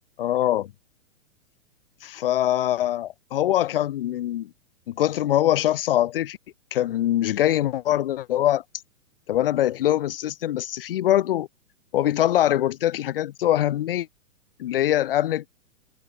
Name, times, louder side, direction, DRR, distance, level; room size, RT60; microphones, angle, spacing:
voice 1, 0.2-0.7 2.0-4.5 4.9-6.4 6.7-8.6 9.3-11.5 11.9-14.1 14.6-15.5, left 12 dB, 40° left, 6.3 m, -23 dB
hypercardioid pair, 175°, 41 cm